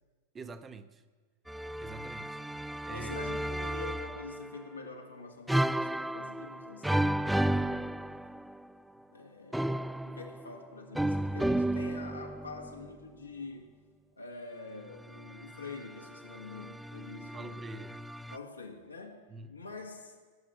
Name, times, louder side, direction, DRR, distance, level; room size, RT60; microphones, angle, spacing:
voice 1, 0.3-1.0 1.8-3.2 17.3-18.0 19.3-19.5, right 3 dB, 20° right, 12 dB, 1.0 m, -46 dB
sound 1, 1.5-4.6 5.5-8.7 9.5-12.9 15.0-18.4, right 1 dB, 5° right, 0.3 m, -33 dB
voice 2, 2.9-8.1 9.1-13.7 14.2-17.7 18.3-20.2, left 3 dB, 80° left, 1 dB, 1.9 m, -46 dB
17.5 x 7.4 x 9.6 m, 1.5 s
figure-of-eight pair, 90°, 0 cm